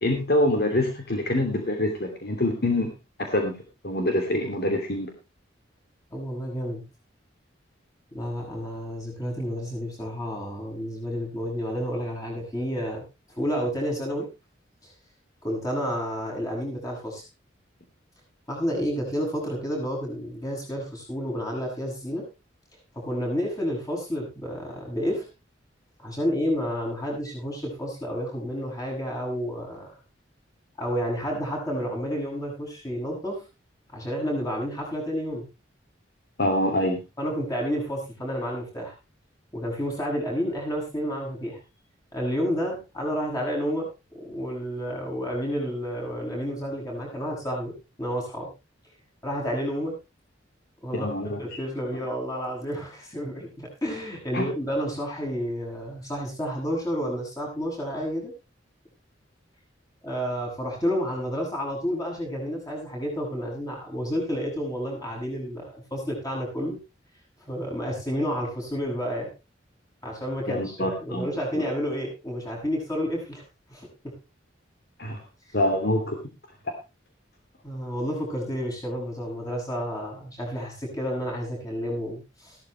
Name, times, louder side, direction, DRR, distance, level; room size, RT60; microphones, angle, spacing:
voice 1, 0.0-2.9 3.2-3.6 3.8-5.1 36.4-37.0 50.9-51.6 54.3-54.5 70.5-71.3 71.5-71.6 75.0-75.2 75.5-76.2, left 1 dB, 55° left, 3 dB, 2.7 m, -25 dB
voice 2, 6.1-6.8 8.1-13.0 13.3-14.3 14.8-14.9 15.4-17.2 18.5-22.3 22.9-25.3 26.0-29.9 30.8-33.4 33.9-35.4 37.2-38.9 39.5-41.6 42.1-43.9 44.1-48.5 49.2-50.0 50.8-58.3 60.0-66.8 67.5-69.3 70.0-73.4 73.7-74.2 77.6-82.6, equal, 20° left, -1 dB, 7.8 m, -30 dB
15.5 x 13.0 x 3.3 m, 0.28 s
head